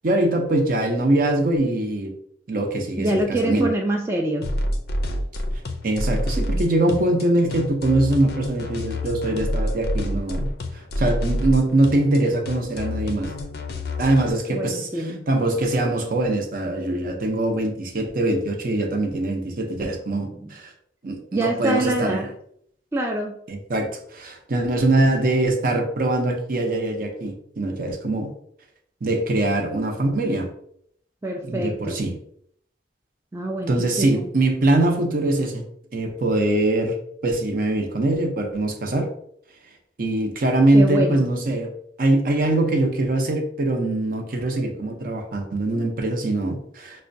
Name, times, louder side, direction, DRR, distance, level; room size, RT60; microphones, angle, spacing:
voice 1, 0.0-2.1 2.5-3.7 5.8-13.3 14.0-14.9 15.3-20.7 21.0-22.3 23.5-28.3 29.0-30.5 31.4-32.1 33.6-35.6 35.9-37.0 37.2-39.1 40.0-41.7 42.0-47.0, right 2 dB, 50° right, 3 dB, 0.6 m, -22 dB
voice 2, 3.0-4.5 14.5-15.3 19.8-19.9 20.3-20.5 21.3-22.3 22.9-23.3 31.2-32.0 33.3-34.2 40.7-41.2, right 1 dB, 15° right, 0 dB, 0.3 m, -25 dB
sound 1, 4.4-14.3, left 1 dB, 60° left, 0.4 m, -27 dB
5.4 x 2.1 x 2.6 m, 0.68 s
head